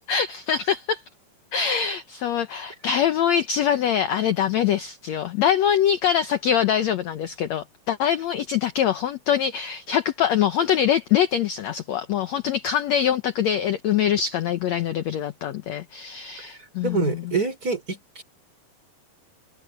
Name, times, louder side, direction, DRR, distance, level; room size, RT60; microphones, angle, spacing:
voice 1, 0.1-1.0 1.5-17.3, left 9 dB, 75° left, 1.7 m, -24 dB
voice 2, 16.8-18.2, right 4 dB, 25° right, 4.2 m, -26 dB
omnidirectional pair, 4.2 m